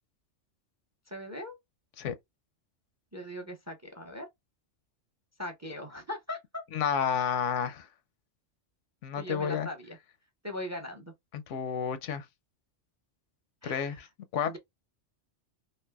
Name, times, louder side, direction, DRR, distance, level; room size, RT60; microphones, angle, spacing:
voice 1, 1.1-1.6 3.1-4.3 5.4-6.6 9.2-10.0 10.4-11.1 13.6-14.0 14.5-14.6, left 1 dB, 20° right, 0.5 m, -40 dB
voice 2, 6.7-7.9 9.0-9.7 11.3-12.3 13.6-14.1 14.3-14.6, left 7 dB, 85° left, 0.9 m, -30 dB
3.2 x 2.7 x 2.2 m
omnidirectional pair, 1.2 m